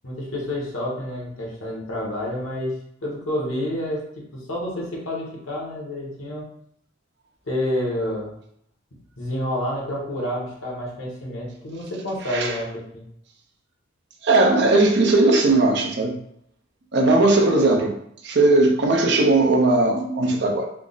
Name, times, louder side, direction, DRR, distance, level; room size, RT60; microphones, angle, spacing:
voice 1, 0.0-6.5 7.5-8.3 9.2-13.0, left 1 dB, 85° left, -2 dB, 1.1 m, -29 dB
voice 2, 14.2-16.1 16.9-18.0 18.2-20.7, right 2 dB, 55° right, 2 dB, 0.5 m, -18 dB
3.4 x 2.0 x 3.8 m, 0.72 s
head